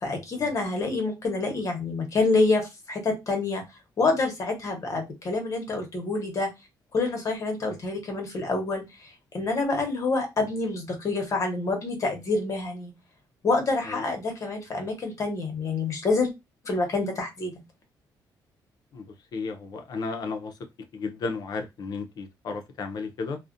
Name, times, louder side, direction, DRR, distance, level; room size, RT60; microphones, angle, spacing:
voice 1, 0.0-3.6 4.0-6.5 6.9-9.1 9.3-12.9 13.4-16.3 16.6-17.6, left 3 dB, 40° left, 0.9 m, -27 dB
voice 2, 19.3-20.5 20.9-23.4, left 4 dB, 60° left, 0.5 m, -33 dB
2.4 x 2.1 x 2.5 m
cardioid pair, 125°, 8 cm